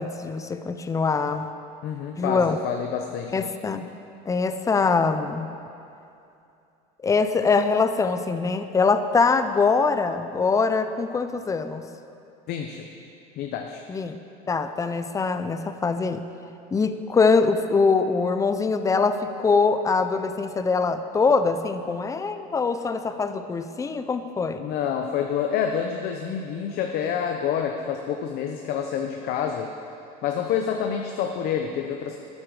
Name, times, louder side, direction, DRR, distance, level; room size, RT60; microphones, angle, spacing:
voice 1, 0.0-1.5 2.2-2.6 3.3-3.9 4.3-5.5 7.0-11.8 13.9-14.2 14.5-16.2 16.7-24.6, left 4 dB, 15° left, 10 dB, 0.6 m, -23 dB
voice 2, 1.8-3.5 12.5-12.8 13.4-13.8 24.6-29.7 30.2-32.2, left 8 dB, 55° left, 4 dB, 0.8 m, -28 dB
12.0 x 9.7 x 4.9 m, 2.7 s
supercardioid pair, 115°, 20 cm